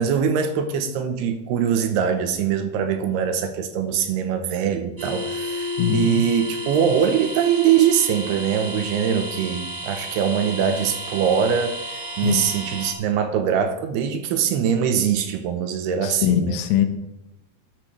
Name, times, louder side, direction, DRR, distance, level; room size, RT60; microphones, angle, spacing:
voice 1, 0.0-11.8 12.2-16.6, right 8 dB, 80° right, 7 dB, 2.7 m, -22 dB
sound 1, 5.0-12.9, equal, 25° right, 0.7 m, -32 dB
voice 2, 5.8-6.2 12.2-12.5 16.0-16.9, left 9 dB, 90° left, 7 dB, 3.1 m, -22 dB
13.5 x 9.3 x 3.3 m, 0.92 s
omnidirectional pair, 5.0 m